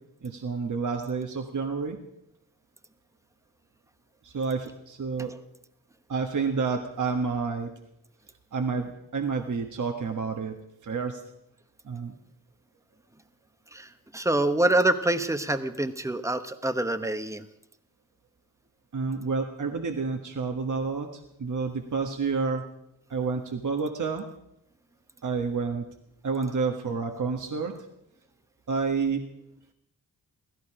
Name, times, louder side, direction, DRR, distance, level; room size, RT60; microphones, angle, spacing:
voice 1, 0.2-2.0 4.2-5.3 6.1-7.7 8.5-10.6 10.8-11.2 11.8-12.1 18.9-22.6 23.1-24.2 25.2-25.8 26.2-27.7 28.7-29.3, right 5 dB, 55° right, 4 dB, 1.5 m, -29 dB
voice 2, 13.7-17.5, right 1 dB, 10° right, 10 dB, 1.2 m, -26 dB
16.0 x 14.5 x 4.9 m, 0.80 s
cardioid pair, 60°, 37 cm